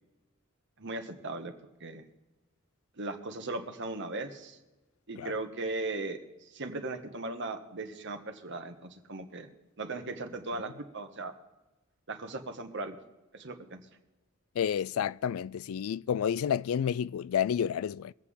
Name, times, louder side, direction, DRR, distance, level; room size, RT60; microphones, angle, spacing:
voice 1, 0.8-1.5 1.8-2.0 3.0-4.6 5.1-9.5 9.8-11.3 12.1-13.0 13.3-13.8, right 2 dB, 60° right, 1.5 m, -38 dB
voice 2, 14.6-18.1, left 8 dB, 80° left, 0.3 m, -30 dB
24.0 x 8.3 x 3.8 m
head